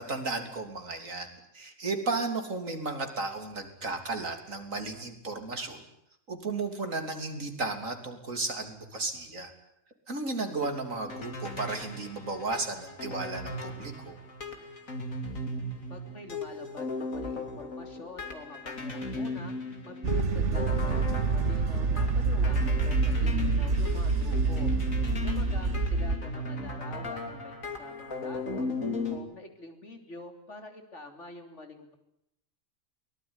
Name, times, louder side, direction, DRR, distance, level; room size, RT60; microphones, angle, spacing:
voice 1, 0.0-5.8 6.3-9.5 10.1-14.2, right 3 dB, 80° right, 6 dB, 3.7 m, -34 dB
sound 1, 10.5-29.2, left 2 dB, 90° left, 3.5 m, -37 dB
voice 2, 15.9-19.5 19.8-24.7 25.2-28.7 29.1-31.9, left 2 dB, 60° left, 6 dB, 3.6 m, -46 dB
sound 2, 20.0-26.2, right 4 dB, 60° right, 1.5 m, -27 dB
23.5 x 19.5 x 9.8 m, 0.78 s
omnidirectional pair, 1.4 m